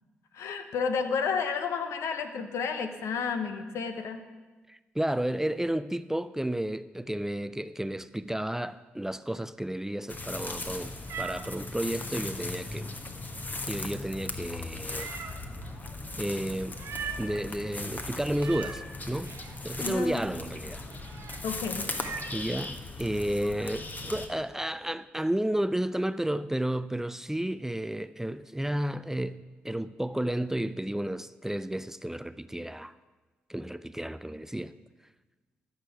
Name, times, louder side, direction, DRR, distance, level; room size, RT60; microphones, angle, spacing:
voice 1, 0.3-4.2 19.8-20.2 21.4-21.9, left 5 dB, 70° left, 1.0 m, -31 dB
voice 2, 4.7-10.9 11.2-12.9 13.7-15.1 16.2-16.8 17.2-19.3 19.6-20.9 22.3-32.9 33.5-34.7, right 1 dB, 10° right, 0.4 m, -32 dB
sound 1, 10.1-24.3, left 2 dB, 35° left, 1.3 m, -38 dB
Meow, 10.4-22.4, right 6 dB, 65° right, 0.9 m, -45 dB
13.0 x 6.7 x 6.0 m
hypercardioid pair, 40°, 5 cm